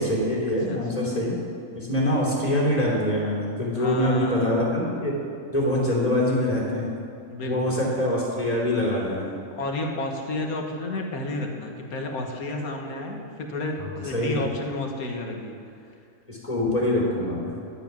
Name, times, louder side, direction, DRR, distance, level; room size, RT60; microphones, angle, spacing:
voice 1, 0.0-1.3 1.7-5.2 5.5-6.9 7.4-9.3 13.9-14.4 16.3-17.5, left 1 dB, 25° left, -5 dB, 3.1 m, -24 dB
voice 2, 0.7-1.0 2.2-2.6 3.7-4.7 7.3-7.8 9.5-15.6, left 2 dB, 80° left, 2 dB, 1.9 m, -31 dB
12.0 x 10.0 x 5.9 m, 2.5 s
omnidirectional pair, 1.5 m